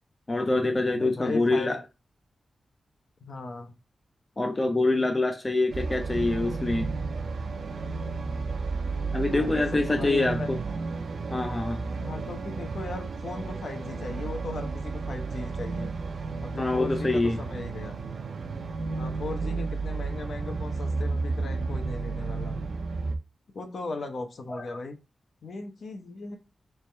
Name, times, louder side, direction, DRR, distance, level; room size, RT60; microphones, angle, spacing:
voice 1, 0.3-1.8 4.4-6.9 9.1-10.6 11.3-11.8 16.5-17.4 24.5-24.8, left 2 dB, 25° left, 0.5 m, -25 dB
voice 2, 0.9-1.8 3.2-3.7 9.3-10.5 12.0-15.9 16.4-17.9 18.9-22.6 23.5-25.0 25.4-26.4, left 3 dB, 60° left, 0.8 m, -37 dB
sound 1, 5.7-23.2, right 4 dB, 65° right, 0.6 m, -32 dB
3.4 x 3.3 x 4.2 m
wide cardioid pair, 170°, 0 cm